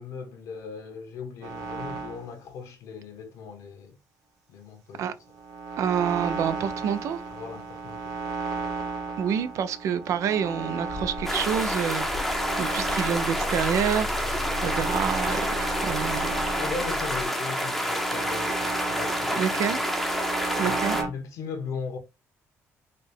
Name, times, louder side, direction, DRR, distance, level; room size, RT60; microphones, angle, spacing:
voice 1, 0.0-4.0 4.5-5.0 7.3-8.1 16.6-19.9 20.5-22.0, left 5 dB, 75° left, 1.1 m, -38 dB
sound 1, 1.4-2.3 5.3-21.1, right 4 dB, 85° right, 0.9 m, -35 dB
voice 2, 5.8-7.2 9.2-12.1 12.6-14.1 14.6-16.3 19.4-19.8 20.6-21.0, right 8 dB, 65° right, 0.5 m, -27 dB
sound 2, 10.9-17.2, left 3 dB, 40° left, 0.7 m, -37 dB
sound 3, 11.2-21.0, equal, ahead, 0.7 m, -28 dB
4.0 x 2.1 x 3.3 m
cardioid pair, 110°, 6 cm